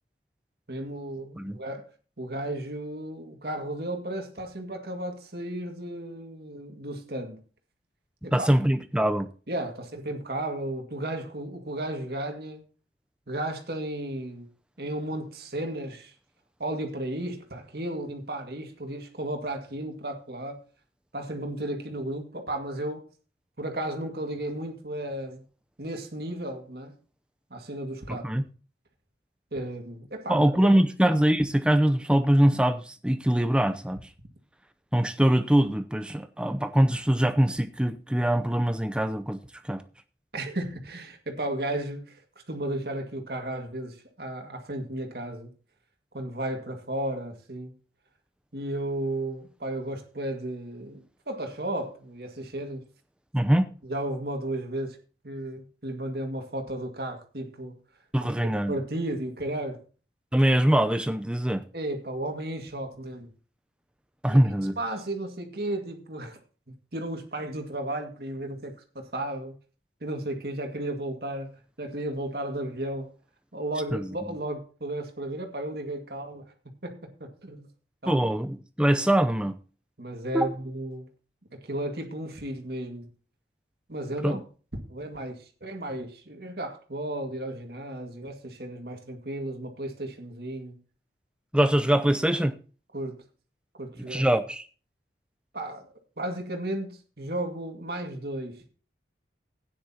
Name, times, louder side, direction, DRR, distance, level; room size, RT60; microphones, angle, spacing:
voice 1, 0.7-1.8 2.2-7.4 8.2-8.5 9.5-12.6 13.3-14.5 14.8-16.1 16.6-20.6 21.1-23.0 23.6-25.4 25.8-26.9 27.5-28.2 29.5-30.4 40.3-42.2 42.5-45.5 46.1-47.7 48.5-52.8 53.8-55.0 55.2-57.8 58.6-59.8 61.7-63.3 64.3-64.4 64.8-66.4 66.9-69.5 70.0-71.5 71.8-73.1 73.5-76.4 76.8-77.7 78.0-78.2 80.0-81.1 81.6-83.1 83.9-84.4 84.9-90.8 92.9-93.2 93.8-94.3 95.5-95.8 96.2-98.7, right 1 dB, 60° right, 2.0 m, -34 dB
voice 2, 8.3-9.3 28.2-28.4 30.3-34.0 34.9-39.4 39.7-39.8 53.3-53.7 58.1-58.7 60.3-61.6 64.2-64.7 73.9-74.1 78.1-79.6 80.3-80.4 84.2-84.4 91.5-92.5 94.1-94.7, right 1 dB, 5° right, 0.6 m, -23 dB
15.0 x 9.7 x 2.8 m
head